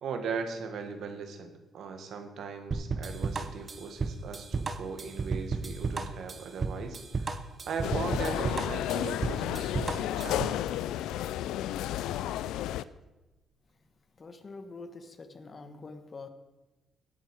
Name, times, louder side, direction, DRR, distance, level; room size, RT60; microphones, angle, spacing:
voice 1, 0.0-7.4 7.7-10.6, right 5 dB, 70° right, 7 dB, 1.6 m, -38 dB
sound 1, 2.7-10.6, right 4 dB, 35° right, 0.9 m, -33 dB
sound 2, 7.8-12.8, left 12 dB, 90° left, 0.4 m, -32 dB
voice 2, 14.2-16.3, left 3 dB, 35° left, 9 dB, 1.2 m, -45 dB
17.0 x 8.1 x 4.8 m, 1.1 s
cardioid pair, 90°, 0 cm